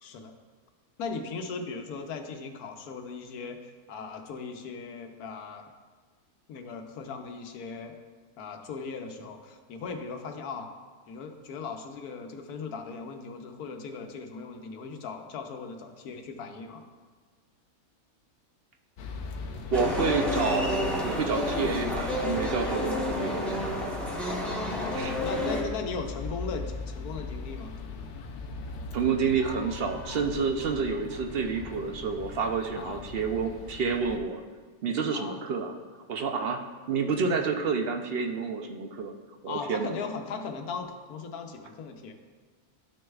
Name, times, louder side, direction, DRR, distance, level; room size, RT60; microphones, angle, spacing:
voice 1, 0.0-0.3 1.0-5.6 6.5-7.9 8.4-10.7 11.1-16.9 24.5-27.7 32.7-33.0 35.1-35.4 39.5-42.1, left 5 dB, 85° left, 5 dB, 1.3 m, -38 dB
sound 1, 19.0-34.2, left 4 dB, 60° left, 0.9 m, -39 dB
sound 2, 19.7-25.6, left 1 dB, ahead, 1.1 m, -30 dB
voice 2, 19.7-23.6 25.0-25.1 28.9-34.4 34.8-35.7 36.1-36.6 36.9-39.1 39.4-40.0, right 5 dB, 65° right, 3 dB, 0.6 m, -29 dB
12.5 x 6.2 x 2.3 m, 1.5 s
omnidirectional pair, 1.6 m